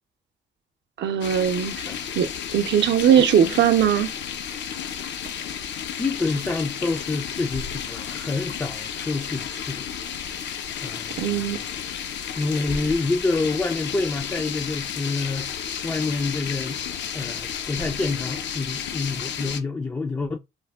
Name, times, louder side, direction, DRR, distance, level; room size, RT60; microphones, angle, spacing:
voice 1, 1.0-1.7 2.2-4.1 11.2-11.6, right 9 dB, 65° right, 0.6 m, -20 dB
sound 1, 1.2-19.6, left 8 dB, 65° left, 0.5 m, -32 dB
voice 2, 6.0-9.9 10.8-11.6 12.4-15.6 15.8-16.8 17.1-20.4, left 3 dB, 15° left, 0.3 m, -27 dB
3.1 x 2.1 x 3.4 m
cardioid pair, 90°, 20 cm